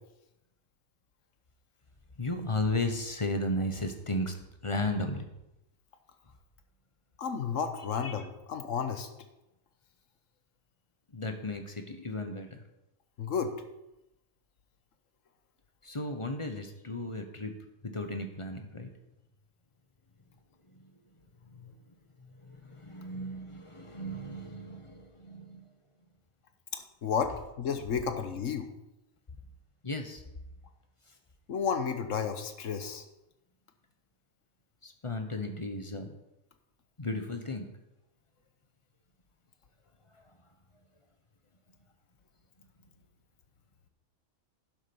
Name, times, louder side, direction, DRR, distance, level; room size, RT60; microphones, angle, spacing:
voice 1, 2.2-4.3 4.6-5.3 11.1-12.6 15.8-17.5 17.8-18.9 22.5-25.6 29.8-30.2 34.8-36.1 37.0-37.7, left 2 dB, 25° left, 6 dB, 1.0 m, -34 dB
voice 2, 7.2-9.1 13.2-13.5 26.7-28.7 31.5-33.0, left 6 dB, 70° left, 8 dB, 1.4 m, -32 dB
11.0 x 7.3 x 5.4 m, 0.92 s
omnidirectional pair, 1.4 m